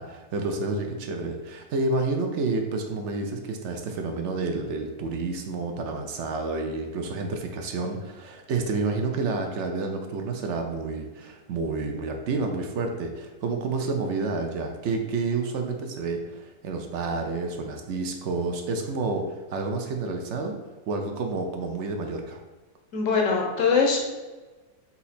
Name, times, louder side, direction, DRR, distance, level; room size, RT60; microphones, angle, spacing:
voice 1, 0.0-20.6 20.9-22.4, right 3 dB, 65° right, 4 dB, 0.7 m, -29 dB
voice 2, 22.9-24.0, left 5 dB, 60° left, 1 dB, 1.0 m, -22 dB
4.2 x 2.8 x 4.1 m, 1.2 s
omnidirectional pair, 1.6 m